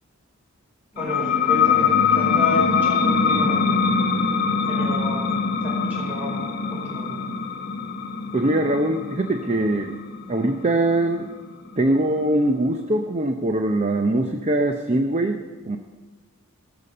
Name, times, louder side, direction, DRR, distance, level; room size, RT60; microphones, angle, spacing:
voice 1, 0.9-3.9 4.5-5.2 5.6-7.2, left 1 dB, 10° right, -5 dB, 4.8 m, -31 dB
sound 1, 1.0-12.2, left 5 dB, 45° left, 1.1 m, -23 dB
voice 2, 8.3-10.0 10.3-11.3 11.8-15.8, right 1 dB, 30° right, 5 dB, 0.6 m, -22 dB
18.0 x 6.9 x 6.7 m, 1.4 s
head